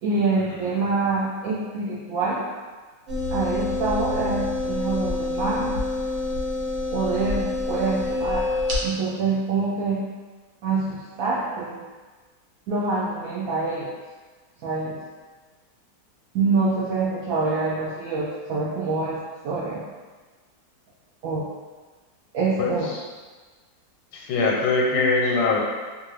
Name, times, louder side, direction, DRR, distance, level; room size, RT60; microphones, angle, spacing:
voice 1, 0.0-2.5 3.3-5.8 6.9-8.5 8.8-10.0 10.6-11.8 12.7-13.9 14.6-15.0 16.3-19.8 21.2-21.5 22.3-22.9, right 3 dB, 80° right, -7 dB, 0.7 m, -26 dB
sound 1, 3.1-8.8, left 2 dB, 60° right, 1.0 m, -27 dB
voice 2, 22.6-23.0 24.1-25.6, left 3 dB, 85° left, -2 dB, 1.3 m, -22 dB
2.9 x 2.4 x 3.2 m, 1.4 s
omnidirectional pair, 2.0 m